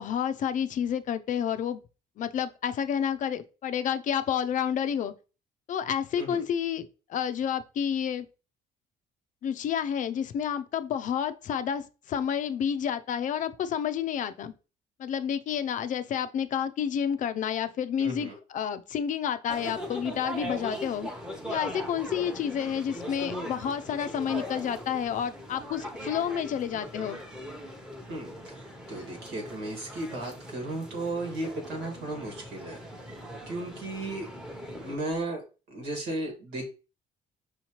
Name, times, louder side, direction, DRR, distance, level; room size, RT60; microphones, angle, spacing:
voice 1, 0.0-1.8 2.2-5.1 5.7-8.3 9.4-14.5 15.0-21.1 21.5-27.2, left 8 dB, 50° left, 0.4 m, -30 dB
voice 2, 18.0-18.4 28.1-28.6 28.9-32.8 33.5-34.3 34.8-35.4 35.7-36.6, right 2 dB, 85° right, 1.7 m, -35 dB
sound 1, 19.5-35.0, equal, 5° right, 0.8 m, -40 dB
5.5 x 2.8 x 3.0 m
cardioid pair, 110°, 17 cm